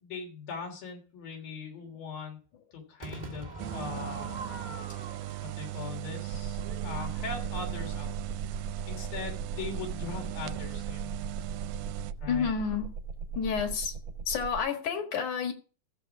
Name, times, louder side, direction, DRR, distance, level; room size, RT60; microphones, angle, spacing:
voice 1, 0.0-2.4 2.7-4.3 5.4-8.2 8.9-11.1 12.2-12.5, left 5 dB, 85° left, 5.0 m, -40 dB
Crowd / Fireworks, 3.0-8.3, right 2 dB, 25° right, 0.9 m, -44 dB
sound 1, 3.6-12.1, right 18 dB, 80° right, 2.3 m, -38 dB
sound 2, 6.3-14.6, right 5 dB, 40° right, 1.9 m, -38 dB
voice 2, 12.3-12.9 13.4-14.0 14.3-15.5, left 6 dB, 65° left, 3.0 m, -30 dB
15.5 x 7.5 x 3.5 m
omnidirectional pair, 4.0 m